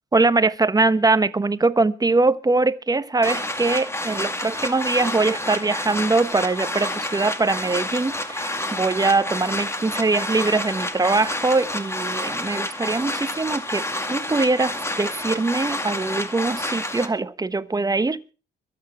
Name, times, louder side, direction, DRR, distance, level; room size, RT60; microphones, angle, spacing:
voice 1, 0.1-18.3, right 3 dB, 20° right, 1.0 m, -22 dB
sound 1, 3.2-17.1, left 1 dB, 15° left, 2.3 m, -29 dB
22.5 x 8.9 x 4.6 m
cardioid pair, 90°, 20 cm